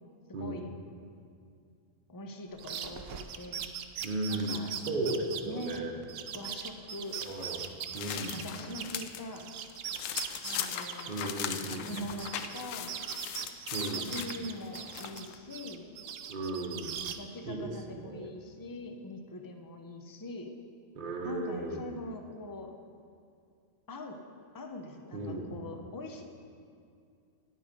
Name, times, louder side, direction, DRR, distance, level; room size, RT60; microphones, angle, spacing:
voice 1, 0.3-0.6 4.0-6.0 7.2-8.4 11.1-11.9 13.7-14.1 16.3-17.1 17.5-18.3 21.0-21.9 25.1-25.5, right 2 dB, 40° right, 2 dB, 1.0 m, -36 dB
voice 2, 2.1-3.7 4.3-4.7 5.5-5.8 6.3-7.2 8.3-9.5 10.4-11.2 11.8-13.0 13.9-15.9 17.2-20.5 21.2-22.7 23.9-24.2 24.5-26.2, left 1 dB, 20° left, 4 dB, 0.5 m, -42 dB
sound 1, 2.6-9.0 9.3-12.6 12.9-15.2 15.5-17.2, right 8 dB, 60° right, 0.7 m, -40 dB
sound 2, 7.1-9.2 9.6-15.4, left 9 dB, 85° left, 1.0 m, -39 dB
10.5 x 9.3 x 5.2 m, 2.4 s
omnidirectional pair, 1.3 m